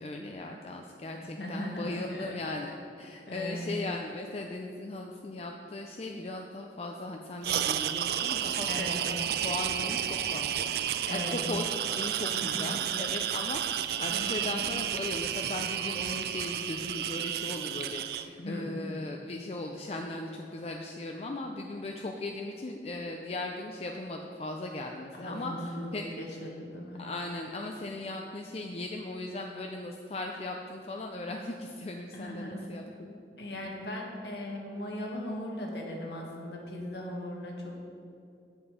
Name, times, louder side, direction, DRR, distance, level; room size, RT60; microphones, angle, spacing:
voice 1, 0.0-26.0 27.0-33.2, left 2 dB, 35° left, 2 dB, 0.4 m, -38 dB
voice 2, 1.2-2.4 3.3-3.7 8.6-9.0 11.0-11.4 12.3-12.8 14.1-14.5 18.4-18.8 25.1-27.0 32.1-32.6 33.4-37.8, left 1 dB, 75° left, -1 dB, 1.4 m, -38 dB
sound 1, 7.4-18.2, right 10 dB, 60° right, 0.3 m, -32 dB
7.3 x 7.2 x 4.9 m, 2.6 s
head